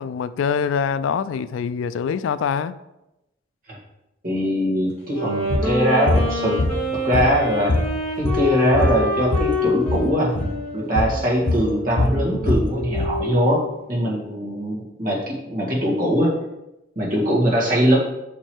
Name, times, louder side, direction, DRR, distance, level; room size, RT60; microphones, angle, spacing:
voice 1, 0.0-2.8, left 6 dB, 80° left, 15 dB, 0.3 m, -24 dB
voice 2, 4.2-6.6 7.0-7.7 8.2-10.4 10.7-13.6 13.9-16.3 17.0-18.0, equal, 45° right, -4 dB, 1.7 m, -21 dB
Wind instrument woodwind instrument, 5.0-13.7, left 1 dB, 5° left, 2.4 m, -27 dB
sound 1, 5.5-5.7 6.1-6.3 6.6-7.4 7.7-9.5 9.8-10.1 10.3-10.5 11.0-11.2 11.5-13.2, left 2 dB, 65° left, 0.8 m, -22 dB
5.4 x 4.7 x 4.5 m, 0.93 s
head